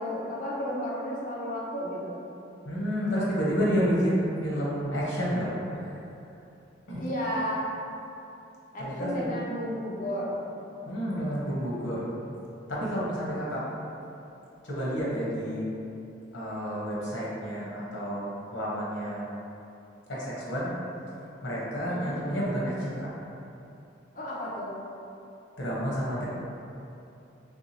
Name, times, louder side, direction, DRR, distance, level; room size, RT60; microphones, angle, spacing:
voice 1, 0.0-2.2 7.0-7.6 8.7-10.4 21.8-22.2 24.1-24.8, equal, 45° left, -6 dB, 0.6 m, -32 dB
voice 2, 2.6-5.9 6.9-7.0 8.8-9.4 10.9-12.1 12.7-13.6 14.6-15.6 16.3-18.3 18.5-19.2 20.1-20.8 21.4-23.1 25.6-26.3, equal, 80° left, -6 dB, 0.9 m, -30 dB
3.3 x 2.7 x 2.8 m, 2.8 s
head